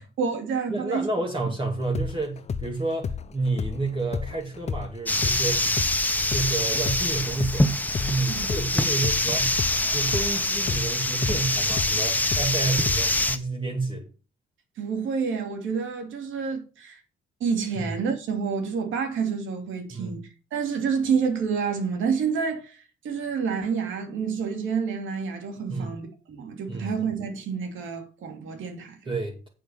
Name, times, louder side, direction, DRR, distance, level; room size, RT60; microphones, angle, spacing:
voice 1, 0.0-1.1 8.3-8.5 14.8-17.0 17.4-20.2 20.5-29.1, right 6 dB, 80° right, 2.6 m, -28 dB
voice 2, 0.7-5.6 6.3-7.7 8.0-9.6 9.9-14.1 17.8-17.9 19.9-20.2 25.7-25.9 26.7-26.9 29.1-29.5, right 3 dB, 25° right, 2.4 m, -30 dB
sound 1, 1.8-8.7 9.0-13.3, left 6 dB, 35° left, 0.6 m, -32 dB
sound 2, 5.1-13.4, left 1 dB, 10° left, 1.1 m, -25 dB
8.6 x 4.8 x 6.9 m
cardioid pair, 90°, 20 cm